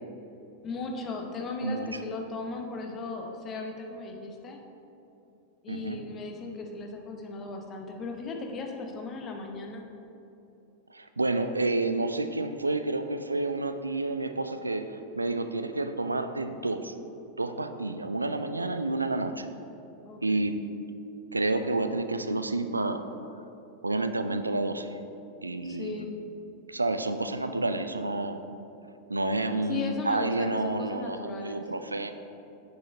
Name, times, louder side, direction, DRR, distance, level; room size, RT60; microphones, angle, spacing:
voice 1, 0.6-4.6 5.6-9.8 20.0-20.5 25.6-26.1 29.7-31.6, left 3 dB, 30° left, 2 dB, 0.9 m, -37 dB
voice 2, 5.7-6.0 10.9-17.0 17.4-19.5 20.2-20.6 21.3-23.1 23.3-23.4 23.8-25.0 25.4-26.0 26.7-28.4 29.1-32.1, right 2 dB, 80° right, 9 dB, 0.3 m, -29 dB
6.5 x 5.5 x 4.3 m, 2.8 s
figure-of-eight pair, 90°, 0 cm